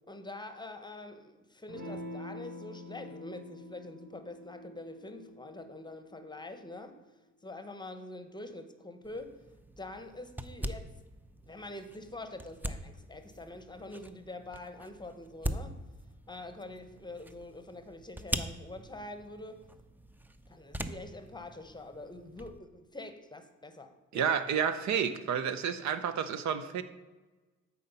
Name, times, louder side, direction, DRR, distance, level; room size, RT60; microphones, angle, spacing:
voice 1, 0.1-7.0 7.4-9.4 9.8-10.9 11.4-15.8 16.3-19.6 20.5-24.3, left 2 dB, 15° left, 8 dB, 0.8 m, -45 dB
Electric guitar / Strum, 1.7-6.8, left 1 dB, 85° right, 2.2 m, -46 dB
sound 1, 9.0-22.6, right 1 dB, 5° right, 0.4 m, -42 dB
voice 2, 24.1-26.8, right 7 dB, 65° right, 11 dB, 0.7 m, -30 dB
8.4 x 4.2 x 6.8 m, 1.2 s
cardioid pair, 90°, 30 cm